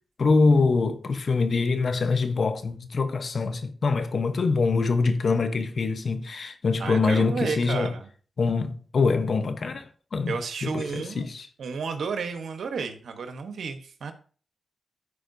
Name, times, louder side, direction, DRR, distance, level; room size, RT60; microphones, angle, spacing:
voice 1, 0.2-7.9 8.4-10.3 10.6-11.5, left 4 dB, 60° left, 0.9 m, -24 dB
voice 2, 6.8-8.1 10.3-11.3 11.6-14.1, right 5 dB, 80° right, 1.0 m, -32 dB
13.0 x 4.7 x 2.6 m
cardioid pair, 60°, 0 cm